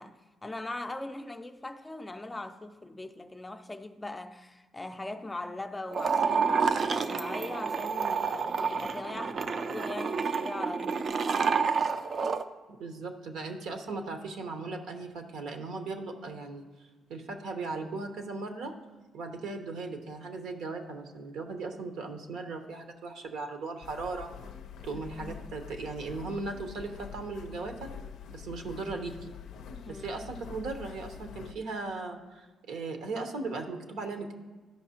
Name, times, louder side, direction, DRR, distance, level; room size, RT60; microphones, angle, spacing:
voice 1, 0.0-11.3 24.9-25.4 29.7-30.2, left 2 dB, 15° left, 0.4 m, -40 dB
sound 1, 5.9-12.4, right 5 dB, 45° right, 0.4 m, -29 dB
voice 2, 12.7-16.6 17.1-18.7 19.1-24.3 24.8-27.9 28.3-29.3 29.9-34.3, right 3 dB, 80° right, 0.9 m, -37 dB
sound 2, 23.8-31.5, left 7 dB, 75° left, 0.4 m, -45 dB
13.0 x 5.4 x 2.9 m
cardioid pair, 90°, 0 cm